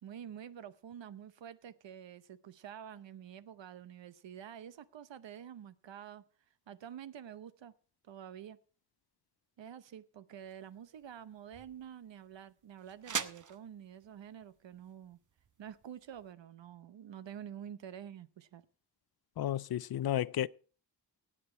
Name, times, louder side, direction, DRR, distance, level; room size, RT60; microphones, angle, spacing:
voice 1, 0.0-6.2 6.7-7.7 8.1-8.6 9.6-15.2 15.6-18.6, right 9 dB, 80° right, 0.8 m, -48 dB
sound 1, 10.4-16.3, right 6 dB, 45° right, 0.8 m, -45 dB
voice 2, 19.4-20.5, left 12 dB, 60° left, 0.5 m, -32 dB
18.0 x 8.4 x 4.4 m
wide cardioid pair, 100°, 43 cm